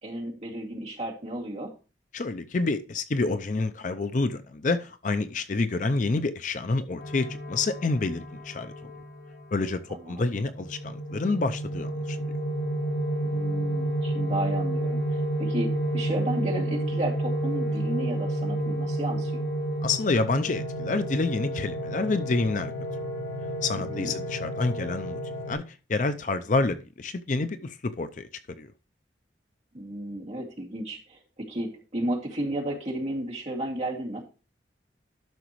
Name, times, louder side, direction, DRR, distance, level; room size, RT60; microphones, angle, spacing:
voice 1, 0.0-1.7 9.9-10.3 13.2-19.4 23.8-24.1 29.7-34.2, right 1 dB, 40° right, 2.3 m, -33 dB
voice 2, 2.1-8.7 9.5-12.2 19.8-22.7 23.6-25.2 25.5-25.6 25.9-28.3 28.6-28.7, left 3 dB, 45° left, 0.5 m, -28 dB
sound 1, 7.0-9.6 10.3-25.5, right 1 dB, 85° left, 2.8 m, -30 dB
12.0 x 6.0 x 3.1 m
head